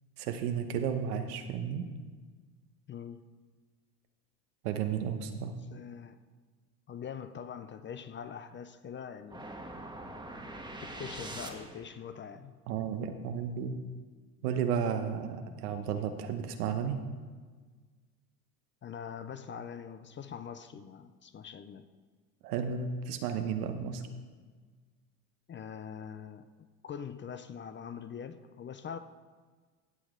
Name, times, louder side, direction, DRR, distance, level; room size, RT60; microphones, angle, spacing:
voice 1, 0.2-1.9 4.6-5.5 12.7-13.7 14.4-17.0 22.4-24.0, right 7 dB, 80° right, 7 dB, 1.2 m, -33 dB
voice 2, 2.9-3.3 5.7-6.2 6.9-9.5 10.8-12.5 18.8-21.9 25.5-26.5 26.8-29.0, left 7 dB, 25° left, 11 dB, 0.6 m, -43 dB
sound 1, 9.3-12.0, right 1 dB, 10° right, 1.6 m, -43 dB
16.0 x 7.9 x 3.8 m, 1.5 s
hypercardioid pair, 85°, 45 cm